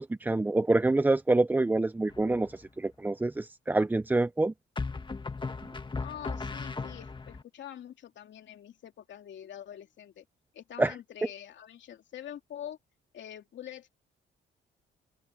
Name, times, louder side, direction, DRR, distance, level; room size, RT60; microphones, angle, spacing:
voice 1, 0.0-4.5 10.8-10.9, right 2 dB, 10° right, 0.4 m, -26 dB
sound 1, 2.1-2.7 4.8-7.4, left 4 dB, 25° left, 1.6 m, -37 dB
voice 2, 6.0-10.2 10.5-12.8 13.1-13.9, left 10 dB, 65° left, 2.9 m, -45 dB
open air
cardioid pair, 90°, 20 cm